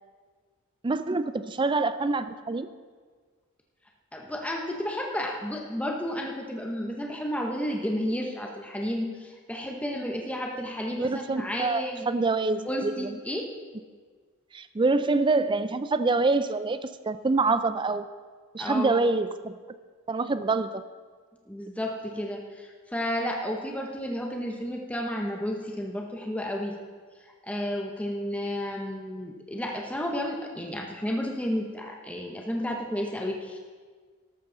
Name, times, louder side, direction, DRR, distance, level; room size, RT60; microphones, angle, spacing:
voice 1, 0.8-2.7 10.9-13.2 14.5-18.0 18.5-19.6 20.1-20.8, right 3 dB, 20° right, 12 dB, 0.4 m, -26 dB
voice 2, 4.1-12.1 12.7-13.5 18.6-19.0 21.5-26.7 27.4-33.6, equal, 5° left, 1 dB, 0.9 m, -32 dB
13.0 x 12.5 x 3.9 m, 1.5 s
head